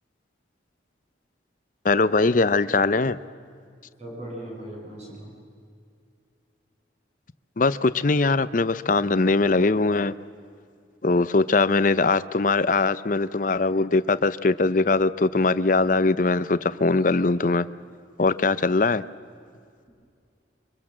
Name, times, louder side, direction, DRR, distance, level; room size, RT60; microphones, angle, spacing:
voice 1, 1.8-3.2 7.6-10.1 11.0-17.7 18.2-19.0, left 3 dB, 45° left, 15 dB, 0.6 m, -21 dB
voice 2, 4.0-5.4, right 1 dB, 35° right, -3 dB, 8.0 m, -38 dB
25.0 x 24.0 x 7.4 m, 2.3 s
head